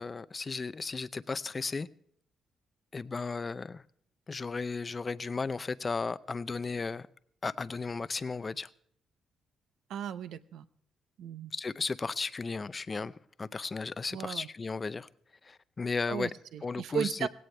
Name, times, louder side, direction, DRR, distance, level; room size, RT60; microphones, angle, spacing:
voice 1, 0.0-1.9 2.9-3.8 4.3-7.1 7.4-8.7 11.5-15.1 15.4-16.3 16.6-17.3, left 4 dB, 25° left, 0.6 m, -35 dB
voice 2, 9.9-10.6 11.2-11.5 14.1-14.5 16.1-17.3, right 8 dB, 75° right, 0.8 m, -35 dB
18.0 x 17.0 x 3.4 m
cardioid pair, 135°, 0 cm